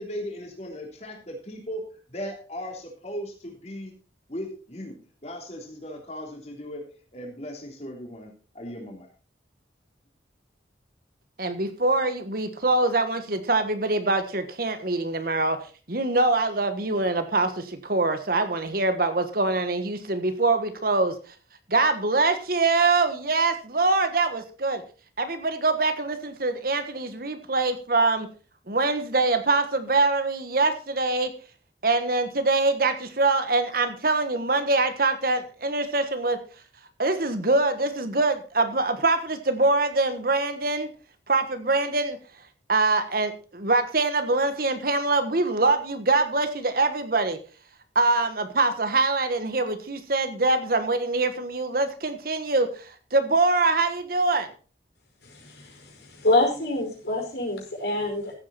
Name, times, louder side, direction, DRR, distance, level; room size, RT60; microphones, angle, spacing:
voice 1, 0.0-1.8 2.1-3.9 4.3-5.0 5.2-6.8 7.1-9.1, equal, 35° left, 1 dB, 3.4 m, -37 dB
voice 2, 11.4-15.6 15.9-21.1 21.7-24.8 25.2-28.3 28.7-31.3 31.8-36.4 37.0-40.9 41.3-42.2 42.7-47.4 47.9-54.5, right 3 dB, 50° right, 9 dB, 1.4 m, -24 dB
voice 3, 55.2-58.3, left 2 dB, 65° left, 1 dB, 5.3 m, -26 dB
15.0 x 8.5 x 4.3 m, 0.37 s
head